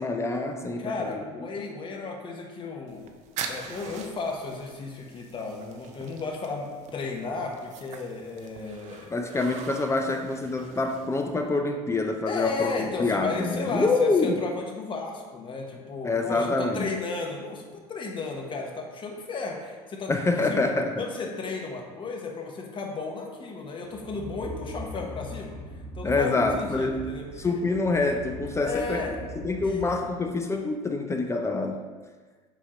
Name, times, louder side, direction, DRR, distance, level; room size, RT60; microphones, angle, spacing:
voice 1, 0.0-1.2 9.1-14.4 16.0-16.9 20.1-20.9 26.0-27.1 27.4-29.1 29.4-31.8, left 3 dB, 20° left, 4 dB, 0.5 m, -26 dB
voice 2, 0.8-3.1 3.5-9.5 12.3-20.1 20.4-20.6 21.0-25.6 25.9-27.5 28.6-29.2 29.6-29.8, left 3 dB, 35° left, 1 dB, 1.2 m, -34 dB
sound 1, 2.9-11.6, right 6 dB, 55° right, 0.6 m, -43 dB
sound 2, 23.9-30.4, equal, 25° right, 1.2 m, -41 dB
7.1 x 2.9 x 5.0 m, 1.4 s
supercardioid pair, 95°, 14 cm